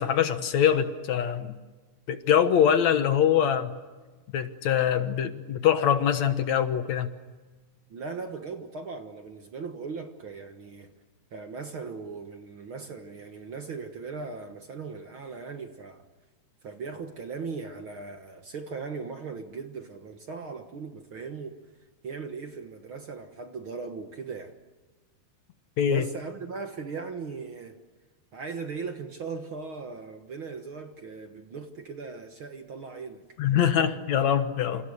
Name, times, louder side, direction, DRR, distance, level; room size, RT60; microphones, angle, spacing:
voice 1, 0.0-1.5 2.1-3.8 4.3-7.1 25.8-26.1 33.4-34.9, left 9 dB, 65° left, 2.5 m, -23 dB
voice 2, 7.9-10.9 11.3-16.0 16.6-21.6 22.0-24.5 25.9-27.8 28.3-33.9, right 4 dB, 50° right, 1.8 m, -38 dB
28.5 x 28.5 x 6.6 m
omnidirectional pair, 3.7 m